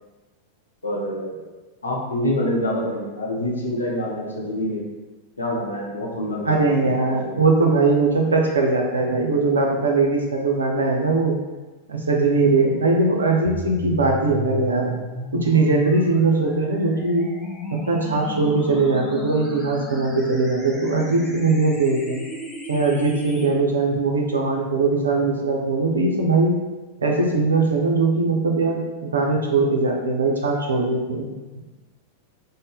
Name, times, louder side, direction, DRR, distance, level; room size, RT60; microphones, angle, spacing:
voice 1, 0.8-1.4 1.8-4.8 5.4-7.4, left 1 dB, 75° left, -3 dB, 0.6 m, -26 dB
voice 2, 6.4-11.3 11.9-14.9 15.3-17.3 17.7-22.2 22.7-26.5 27.0-31.3, right 3 dB, 70° right, 1 dB, 0.5 m, -20 dB
sound 1, 13.5-23.5, left 1 dB, 15° left, 0.5 m, -34 dB
2.6 x 2.0 x 3.4 m, 1.2 s
figure-of-eight pair, 90°, 0 cm